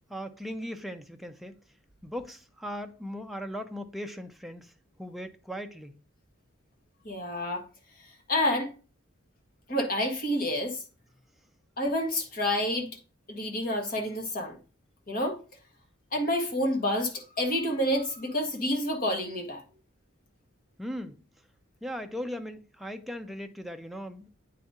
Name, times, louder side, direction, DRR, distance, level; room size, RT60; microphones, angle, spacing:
voice 1, 0.1-1.5 2.0-4.7 5.0-5.9 20.8-21.2 21.8-24.3, equal, ahead, 0.5 m, -38 dB
voice 2, 7.0-7.6 8.3-8.7 9.7-10.8 11.8-12.9 13.3-14.6 15.1-15.4 16.1-19.6, left 1 dB, 45° left, 1.6 m, -28 dB
8.8 x 4.1 x 3.6 m
head